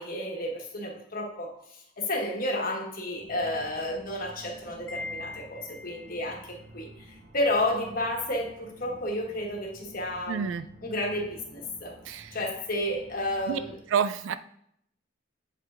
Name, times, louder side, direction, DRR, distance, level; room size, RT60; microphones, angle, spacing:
voice 1, 0.0-11.9 12.3-13.8, left 1 dB, 45° left, 0 dB, 1.2 m, -31 dB
sound 1, 3.2-13.7, right 1 dB, 55° right, 1.0 m, -51 dB
Wind chime, 4.9-6.3, left 2 dB, 80° left, 1.0 m, -40 dB
voice 2, 10.3-10.7 12.1-12.4 13.5-13.6 13.9-14.3, right 7 dB, 80° right, 12 dB, 0.3 m, -28 dB
8.4 x 5.3 x 2.4 m, 0.71 s
head